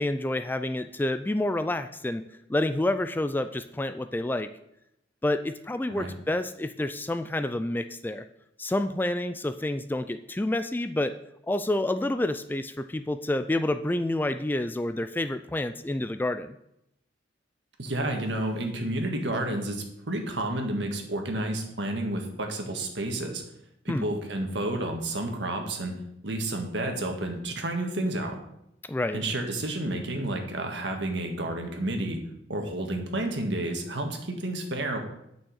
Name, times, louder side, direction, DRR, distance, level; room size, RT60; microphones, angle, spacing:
voice 1, 0.0-2.2 2.5-4.5 5.2-8.2 8.6-11.2 11.5-16.6 23.9-24.1 28.9-29.2, left 1 dB, 10° left, 10 dB, 0.3 m, -28 dB
voice 2, 17.8-23.4 23.8-25.9 26.2-28.3 29.1-32.2 32.5-35.0, right 1 dB, 70° right, 3 dB, 1.7 m, -30 dB
8.8 x 6.3 x 6.5 m, 0.80 s
head